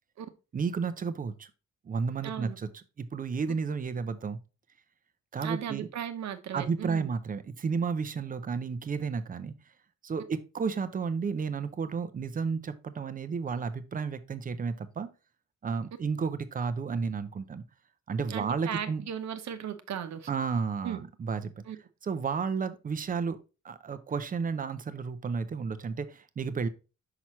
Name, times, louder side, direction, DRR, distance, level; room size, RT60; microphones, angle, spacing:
voice 1, 0.5-1.5 1.8-2.7 3.0-4.4 5.3-5.9 6.5-9.5 10.0-15.1 15.6-17.6 18.1-19.0 20.3-21.5 22.0-23.4 23.6-26.7, right 5 dB, 30° right, 0.6 m, -32 dB
voice 2, 2.2-2.6 5.4-7.1 18.3-20.3 20.8-21.0 21.7-21.8, right 9 dB, 70° right, 0.9 m, -36 dB
5.9 x 5.8 x 3.0 m
wide cardioid pair, 175°, 29 cm